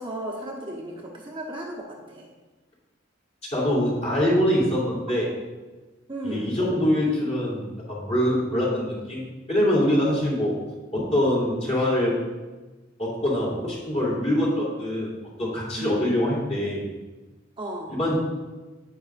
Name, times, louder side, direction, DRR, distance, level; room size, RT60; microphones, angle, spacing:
voice 1, 0.0-2.3 6.1-6.6 15.8-16.0 17.6-18.0, right 1 dB, 25° right, -3 dB, 1.0 m, -35 dB
voice 2, 3.5-5.3 6.2-10.5 10.9-12.2 13.0-15.1 15.4-16.9 17.9-18.2, left 1 dB, 35° left, -6 dB, 2.9 m, -24 dB
9.8 x 8.8 x 2.5 m, 1.2 s
head